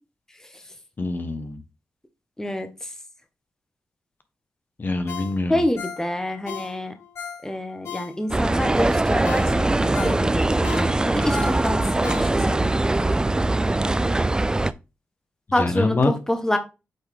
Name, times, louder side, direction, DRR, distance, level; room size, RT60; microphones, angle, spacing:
voice 1, 1.0-1.6 4.8-5.6 15.6-16.1, left 3 dB, 45° left, 8 dB, 1.1 m, -24 dB
Ringtone, 5.1-8.5 8.9-9.0 9.2-12.7 13.1-13.2, left 8 dB, 75° left, 1.3 m, -37 dB
voice 2, 5.5-6.9 7.4-12.7 15.5-16.6, left 1 dB, 10° left, 8 dB, 1.1 m, -27 dB
sound 1, 8.3-14.7, right 2 dB, 15° right, 0.4 m, -21 dB
7.9 x 3.7 x 3.4 m, 0.28 s
cardioid pair, 50°, 5 cm